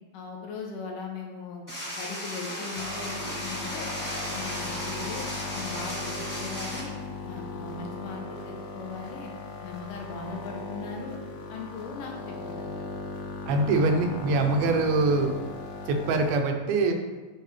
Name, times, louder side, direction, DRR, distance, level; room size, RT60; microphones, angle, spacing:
voice 1, 0.1-3.9 4.3-6.9 7.2-9.3 9.6-11.2 11.5-12.8, left 4 dB, 75° left, 1 dB, 2.3 m, -39 dB
sound 1, 1.7-6.8, equal, 10° left, 0.9 m, -35 dB
sound 2, 2.8-16.3, left 3 dB, 90° left, 1.4 m, -38 dB
voice 2, 13.5-15.4 15.9-16.9, right 3 dB, 80° right, 4 dB, 2.7 m, -24 dB
8.4 x 7.7 x 3.3 m, 1.3 s
omnidirectional pair, 4.3 m